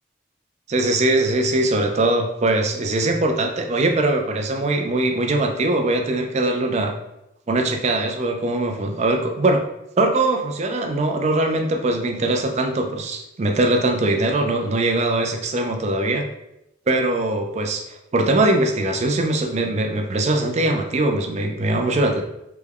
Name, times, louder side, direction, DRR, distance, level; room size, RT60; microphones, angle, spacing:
voice 1, 0.7-7.0 7.5-9.6 10.0-16.3 16.9-22.2, right 2 dB, 40° right, 3 dB, 0.4 m, -21 dB
3.4 x 2.2 x 3.4 m, 0.86 s
head